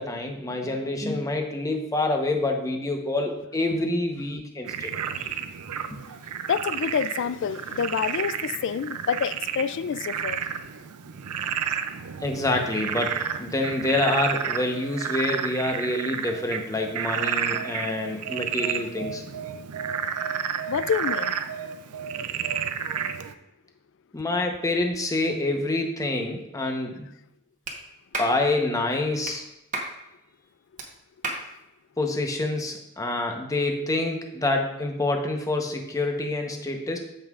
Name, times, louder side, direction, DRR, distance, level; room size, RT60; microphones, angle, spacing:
voice 1, 0.0-5.0 5.9-6.0 12.2-19.2 24.1-27.1 28.2-29.4 32.0-37.0, left 2 dB, 15° left, 0.9 m, -27 dB
Frog, 4.7-23.3, right 8 dB, 90° right, 0.5 m, -31 dB
voice 2, 6.5-10.4 20.7-21.4 31.3-31.5, left 7 dB, 55° left, 0.3 m, -28 dB
Clapping, 27.7-27.8 28.1-28.4 29.2-29.4 29.7-29.9 30.8-30.9 31.2-31.4, right 2 dB, 35° right, 1.1 m, -31 dB
14.0 x 5.5 x 2.4 m
head